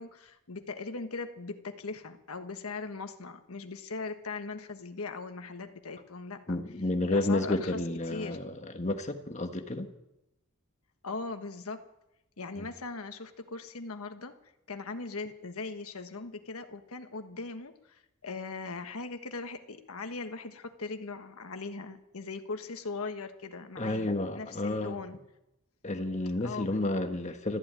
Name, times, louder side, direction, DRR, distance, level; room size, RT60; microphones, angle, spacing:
voice 1, 0.0-6.6 7.1-7.8 8.1-8.4 11.0-11.8 12.4-14.3 14.7-25.2 26.4-26.7, left 3 dB, 80° left, 7 dB, 1.3 m, -39 dB
voice 2, 6.5-9.9 12.6-12.7 23.8-25.0 25.8-27.6, left 2 dB, 35° left, 6 dB, 1.3 m, -31 dB
14.0 x 11.0 x 8.8 m, 0.88 s
head